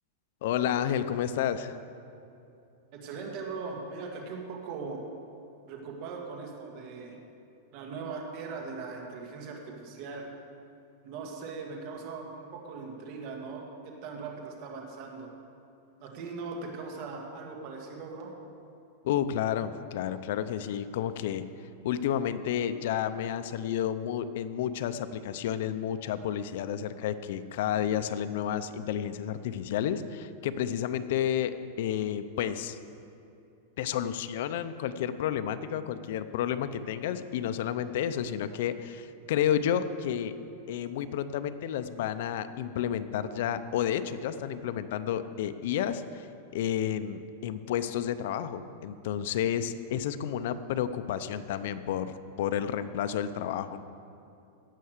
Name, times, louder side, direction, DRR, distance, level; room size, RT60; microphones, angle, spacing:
voice 1, 0.4-1.8 19.0-21.4 21.8-32.8 33.8-40.3 40.7-46.3 46.5-53.8, left 9 dB, 60° left, 11 dB, 0.5 m, -31 dB
voice 2, 2.9-5.0 5.7-7.2 7.7-10.3 11.0-15.3 16.0-18.3, right 4 dB, 45° right, 1 dB, 2.0 m, -40 dB
16.5 x 5.6 x 6.6 m, 2.7 s
supercardioid pair, 155°, 0 cm